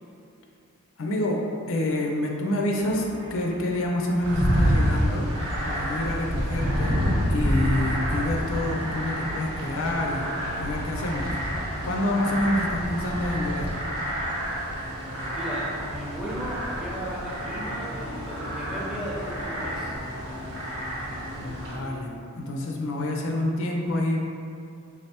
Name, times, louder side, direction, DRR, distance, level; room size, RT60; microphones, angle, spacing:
voice 1, 1.0-5.3 5.6-7.0 7.3-11.4 11.8-13.7 21.3-24.3, left 1 dB, 60° left, 0 dB, 0.4 m, -27 dB
sound 1, 2.8-11.8, right 1 dB, 55° right, 0.5 m, -44 dB
sound 2, 4.2-21.8, equal, 85° right, 1.0 m, -28 dB
voice 2, 15.3-19.9, equal, 5° right, -6 dB, 0.5 m, -35 dB
3.6 x 3.3 x 2.8 m, 2.5 s
head